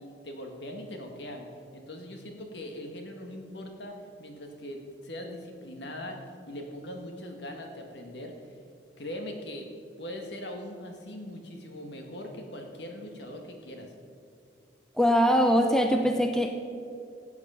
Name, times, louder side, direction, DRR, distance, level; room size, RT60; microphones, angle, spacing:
voice 1, 0.0-1.5 1.7-6.2 6.5-8.3 9.0-9.7 10.0-13.9, left 1 dB, 60° left, 3 dB, 1.6 m, -41 dB
voice 2, 15.0-16.5, equal, 5° left, 4 dB, 0.6 m, -22 dB
17.0 x 8.2 x 5.6 m, 2.5 s
head